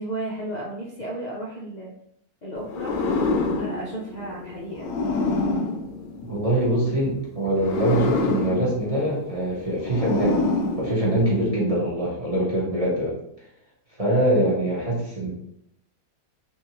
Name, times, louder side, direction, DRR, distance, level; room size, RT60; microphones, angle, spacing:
voice 1, 0.0-1.9 2.4-2.9 3.6-4.9, right 1 dB, 50° left, -4 dB, 0.5 m, -33 dB
sound 1, 2.7-6.8 7.5-11.5, left 3 dB, 80° left, 1.1 m, -27 dB
voice 2, 6.3-10.4 10.8-13.1 14.0-15.3, right 1 dB, 30° right, -6 dB, 0.8 m, -23 dB
3.5 x 2.6 x 2.9 m, 0.73 s
omnidirectional pair, 1.6 m